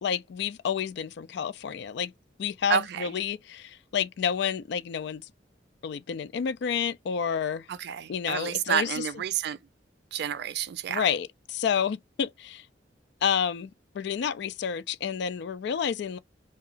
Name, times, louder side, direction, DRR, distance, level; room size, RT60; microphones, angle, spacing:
voice 1, 0.0-2.1 2.4-5.2 5.8-7.6 8.1-9.1 10.9-12.6 13.2-16.2, left 7 dB, 65° left, 0.3 m, -30 dB
voice 2, 2.7-3.1 7.8-9.6 10.1-11.0, right 8 dB, 60° right, 0.3 m, -29 dB
2.8 x 2.3 x 2.5 m
head